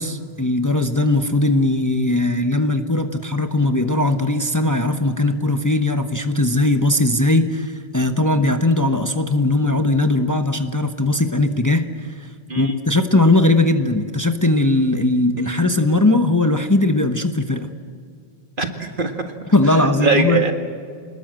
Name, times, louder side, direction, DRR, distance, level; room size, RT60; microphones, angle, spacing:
voice 1, 0.0-12.3 12.6-17.7 19.5-20.4, left 2 dB, 20° left, 7 dB, 0.9 m, -19 dB
voice 2, 18.6-19.1 19.7-20.5, right 3 dB, 55° right, 5 dB, 2.0 m, -21 dB
26.0 x 21.0 x 7.6 m, 2.2 s
omnidirectional pair, 1.0 m